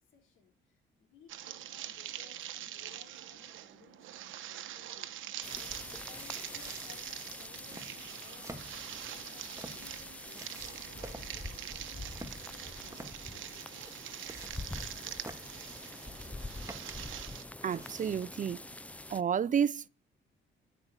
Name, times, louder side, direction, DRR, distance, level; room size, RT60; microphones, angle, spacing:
voice 1, 0.1-5.1 5.5-13.6, left 6 dB, 80° left, 4.2 m, -60 dB
sound 1, 1.3-17.4, right 12 dB, 85° right, 1.1 m, -44 dB
sound 2, 5.4-19.2, left 2 dB, 5° left, 0.5 m, -45 dB
sound 3, 6.0-18.4, right 1 dB, 15° right, 1.8 m, -51 dB
voice 2, 17.6-18.6 19.1-19.9, right 8 dB, 40° right, 0.5 m, -30 dB
13.0 x 5.7 x 8.8 m
cardioid pair, 90°, 20 cm